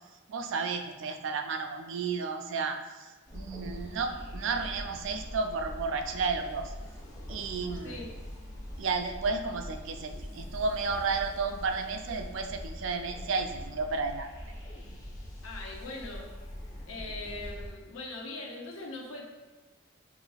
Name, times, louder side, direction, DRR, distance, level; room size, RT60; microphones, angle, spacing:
voice 1, 0.3-2.8 3.3-6.7 7.3-8.0 8.8-14.3, right 4 dB, 60° right, 6 dB, 0.3 m, -32 dB
sound 1, 3.3-17.7, equal, 15° left, 0.7 m, -43 dB
voice 2, 15.4-16.3 16.9-19.3, left 2 dB, 75° left, 0 dB, 0.7 m, -41 dB
5.8 x 2.6 x 2.3 m, 1.3 s
head